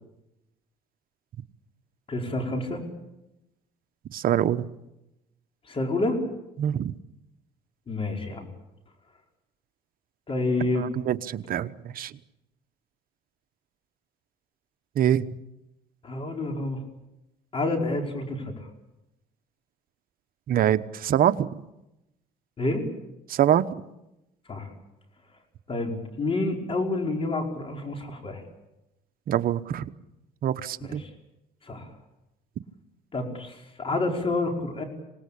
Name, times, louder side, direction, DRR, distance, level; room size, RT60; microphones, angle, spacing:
voice 1, 2.1-2.8 5.7-6.2 7.9-8.5 10.3-10.9 16.0-16.8 17.5-18.5 22.6-22.8 24.5-24.7 25.7-28.4 30.8-31.1 31.6-31.9 33.1-34.8, left 2 dB, 30° left, 3 dB, 5.0 m, -28 dB
voice 2, 4.1-4.6 6.6-6.9 10.7-12.1 15.0-15.3 20.5-21.5 23.3-23.6 29.3-29.8 30.4-31.0, right 10 dB, 60° right, 10 dB, 1.1 m, -24 dB
26.0 x 18.5 x 8.6 m, 0.93 s
cardioid pair, 110°, 17 cm